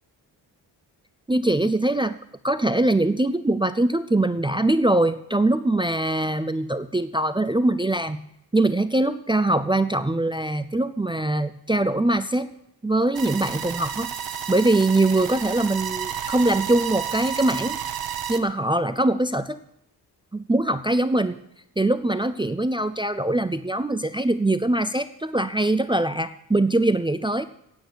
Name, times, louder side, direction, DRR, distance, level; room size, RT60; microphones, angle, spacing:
voice 1, 1.3-2.2 2.4-8.2 8.5-12.5 12.8-14.1 14.5-17.8 18.3-19.6 20.3-21.4 21.8-27.5, right 2 dB, 10° right, 12 dB, 0.4 m, -22 dB
sound 1, 13.2-18.4, right 9 dB, 55° right, 1.2 m, -31 dB
16.0 x 9.0 x 6.3 m, 0.78 s
wide cardioid pair, 160°, 42 cm